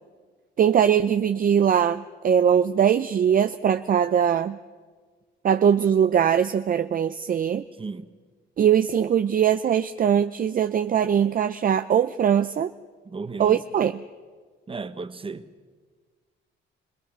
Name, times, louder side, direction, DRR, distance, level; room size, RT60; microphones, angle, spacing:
voice 1, 0.6-4.6 5.4-7.6 8.6-12.7 13.4-13.9, right 8 dB, 45° right, 0.6 m, -21 dB
voice 2, 7.8-8.1 13.0-13.6 14.7-15.5, right 4 dB, 25° right, 1.2 m, -34 dB
26.0 x 19.0 x 6.2 m
cardioid pair, 90°, 20 cm